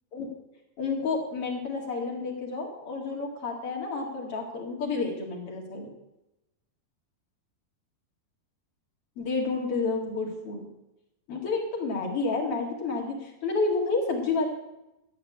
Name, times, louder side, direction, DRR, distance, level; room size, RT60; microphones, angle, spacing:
voice 1, 0.8-5.9 9.2-10.7 11.3-14.5, left 3 dB, 45° left, 0 dB, 2.5 m, -30 dB
12.5 x 8.7 x 8.7 m, 0.94 s
omnidirectional pair, 4.5 m